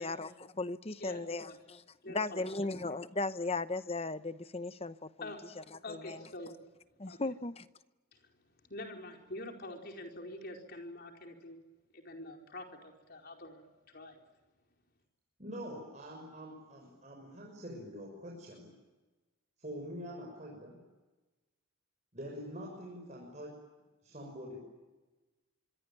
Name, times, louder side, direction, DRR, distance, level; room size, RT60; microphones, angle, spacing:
voice 1, 0.0-1.5 2.1-6.2 7.0-7.7, left 3 dB, 25° left, 0.8 m, -37 dB
voice 2, 1.0-1.6 2.0-2.4 5.2-5.4 5.8-6.5 7.1-7.2 8.1-8.3 8.7-11.6 11.9-14.2, left 1 dB, 45° left, 4.7 m, -46 dB
voice 3, 15.4-18.7 19.6-20.8 22.1-23.5 24.0-24.6, equal, 35° right, 6.2 m, -45 dB
25.0 x 24.5 x 9.1 m
head